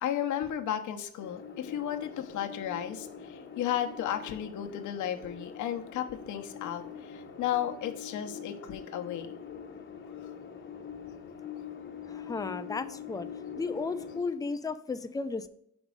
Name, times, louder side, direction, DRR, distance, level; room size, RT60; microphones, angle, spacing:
voice 1, 0.0-9.3, left 10 dB, 75° left, 5 dB, 0.8 m, -34 dB
sound 1, 1.2-14.2, left 7 dB, 40° left, 0.8 m, -44 dB
voice 2, 12.1-13.3 13.6-15.5, left 4 dB, 10° left, 10 dB, 0.4 m, -34 dB
5.2 x 4.0 x 4.7 m, 0.75 s
cardioid pair, 90°, 30 cm